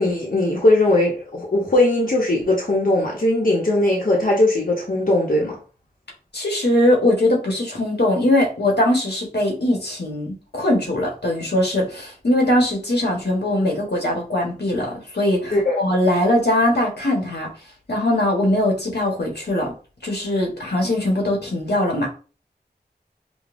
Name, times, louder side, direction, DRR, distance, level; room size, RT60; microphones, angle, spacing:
voice 1, 0.0-5.6 15.5-15.8, left 1 dB, 55° left, -3 dB, 1.0 m, -19 dB
voice 2, 6.3-17.5 17.9-19.7 20.0-22.1, left 1 dB, 80° left, -1 dB, 1.3 m, -21 dB
5.1 x 2.2 x 2.5 m, 0.36 s
wide cardioid pair, 45°, 17 cm